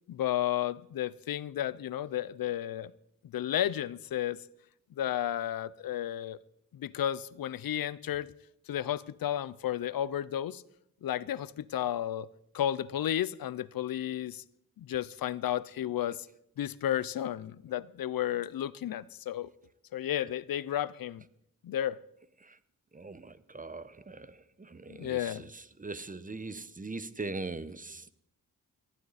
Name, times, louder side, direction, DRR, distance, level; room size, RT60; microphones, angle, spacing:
voice 1, 0.1-2.9 3.3-4.4 5.0-6.4 6.7-8.3 8.7-10.6 11.0-12.3 12.5-14.4 14.8-16.2 16.6-19.5 19.9-21.2 21.6-22.0 24.9-25.4, left 11 dB, 85° left, 0.6 m, -32 dB
voice 2, 22.9-28.1, right 3 dB, 25° right, 0.9 m, -41 dB
19.0 x 14.5 x 4.2 m
cardioid pair, 75°, 34 cm